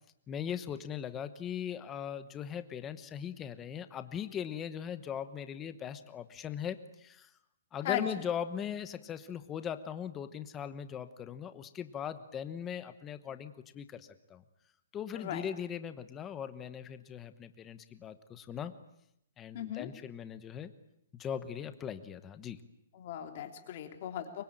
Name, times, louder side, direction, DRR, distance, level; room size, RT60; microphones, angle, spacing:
voice 1, 0.3-7.3 7.7-14.4 14.9-18.7 19.4-20.7 21.1-22.6, left 8 dB, 10° left, 11 dB, 1.0 m, -39 dB
voice 2, 15.1-15.5 19.5-19.9 22.9-24.4, left 11 dB, 30° left, 5 dB, 3.1 m, -37 dB
24.5 x 24.0 x 9.0 m, 0.79 s
hypercardioid pair, 180°, 0 cm